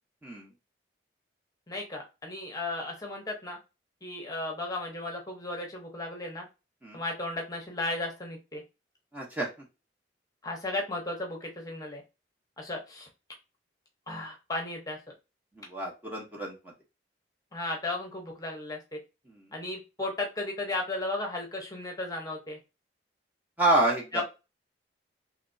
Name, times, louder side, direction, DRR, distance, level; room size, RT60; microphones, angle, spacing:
voice 1, 1.7-3.6 4.0-6.5 6.9-8.6 10.4-12.0 12.6-13.1 14.1-15.0 17.5-19.0 19.5-22.6 24.1-24.2, left 2 dB, 20° left, 1 dB, 0.9 m, -35 dB
voice 2, 9.1-9.5 15.5-16.7 19.3-19.5 23.6-24.2, right 2 dB, 10° right, -3 dB, 0.8 m, -28 dB
3.2 x 3.1 x 2.6 m, 0.27 s
head